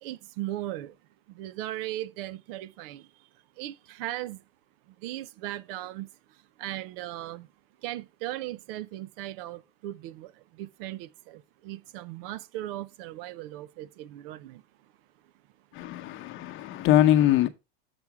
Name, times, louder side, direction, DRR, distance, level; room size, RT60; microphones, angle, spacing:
voice 1, 0.0-1.0 1.3-3.3 3.6-4.4 4.9-7.5 7.8-14.6, right 14 dB, 65° right, 0.7 m, -38 dB
voice 2, 15.7-17.5, left 12 dB, 40° left, 1.0 m, -22 dB
7.1 x 4.8 x 4.7 m
supercardioid pair, 140°, 30 cm